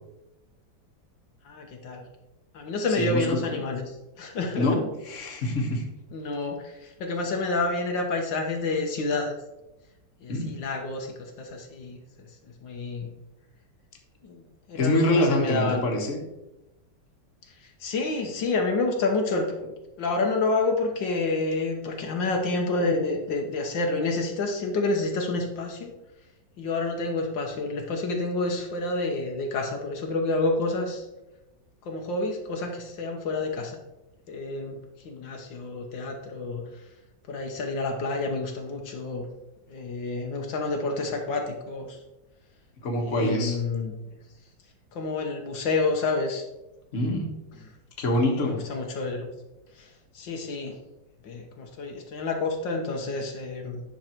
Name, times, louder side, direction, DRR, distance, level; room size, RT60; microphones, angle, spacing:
voice 1, 1.5-2.0 2.5-4.7 6.1-9.4 10.2-12.0 12.6-13.1 14.2-14.4 14.7-15.9 17.6-19.7 20.0-25.9 26.6-31.1 31.9-33.8 34.3-34.8 35.1-36.6 37.3-39.3 39.7-42.0 43.0-43.9 44.9-46.4 48.2-49.3 49.8-50.8 51.2-53.8, left 3 dB, 75° left, 2 dB, 1.8 m, -29 dB
voice 2, 3.0-3.6 4.6-5.8 10.3-10.6 14.7-16.2 42.8-43.6 46.9-47.3 48.0-48.6, left 1 dB, 45° left, 1 dB, 1.7 m, -25 dB
9.9 x 6.1 x 4.5 m, 0.97 s
omnidirectional pair, 2.1 m